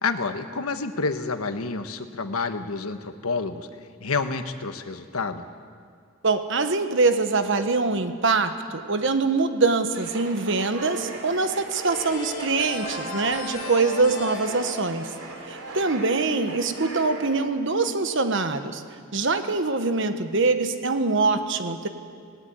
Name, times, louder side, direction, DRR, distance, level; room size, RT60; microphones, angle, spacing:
voice 1, 0.0-3.7 4.0-5.5, left 4 dB, 85° left, 8 dB, 1.3 m, -29 dB
voice 2, 6.2-15.1 15.5-18.8 19.1-21.9, right 3 dB, 60° right, 8 dB, 1.3 m, -24 dB
sound 1, 9.9-17.4, right 2 dB, 90° right, 3.5 m, -38 dB
sound 2, 11.9-16.5, left 2 dB, 70° left, 6.5 m, -37 dB
18.5 x 17.0 x 9.6 m, 2.1 s
head